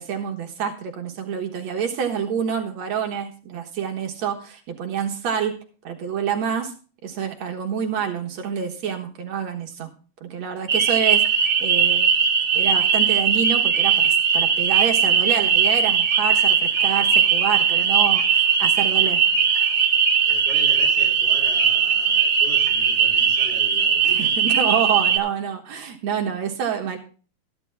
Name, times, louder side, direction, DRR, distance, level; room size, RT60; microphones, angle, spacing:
voice 1, 0.0-5.5 5.8-6.7 7.0-9.9 10.2-12.1 12.5-19.2 24.0-27.0, right 8 dB, 65° right, 3 dB, 2.4 m, -27 dB
sound 1, 10.7-25.2, right 6 dB, 45° right, 2.0 m, -19 dB
voice 2, 20.3-24.4, left 2 dB, 65° left, 0 dB, 6.2 m, -40 dB
14.0 x 11.0 x 3.5 m, 0.38 s
omnidirectional pair, 3.6 m